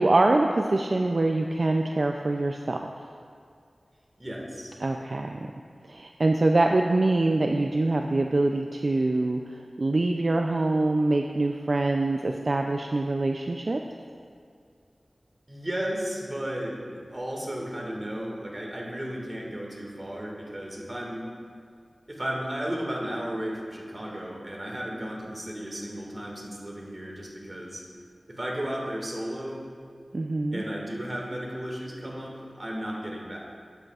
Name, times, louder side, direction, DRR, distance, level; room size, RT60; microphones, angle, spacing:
voice 1, 0.0-2.9 4.8-5.5 5.9-13.8 30.1-30.6, right 2 dB, 55° right, 3 dB, 0.4 m, -24 dB
voice 2, 4.2-4.8 15.5-21.2 22.1-27.8 28.3-29.6 30.5-33.4, equal, 30° right, -2 dB, 1.9 m, -34 dB
12.0 x 9.1 x 2.4 m, 2.2 s
wide cardioid pair, 60°, 0 cm